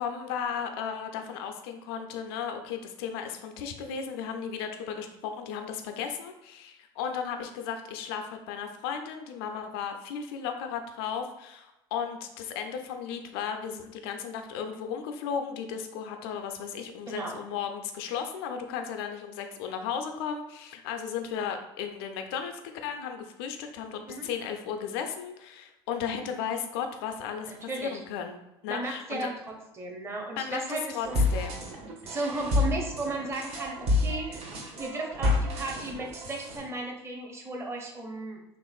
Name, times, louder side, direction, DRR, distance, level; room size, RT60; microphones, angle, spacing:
voice 1, 0.0-29.3 30.4-31.7, left 7 dB, 70° left, 5 dB, 0.4 m, -35 dB
voice 2, 27.7-28.0 28.7-29.3 29.7-31.2 32.0-38.4, right 2 dB, 20° right, 1 dB, 0.6 m, -35 dB
sound 1, 31.1-36.6, left 2 dB, 50° right, 0.8 m, -29 dB
2.9 x 2.4 x 2.3 m, 0.91 s
hypercardioid pair, 75°, 13 cm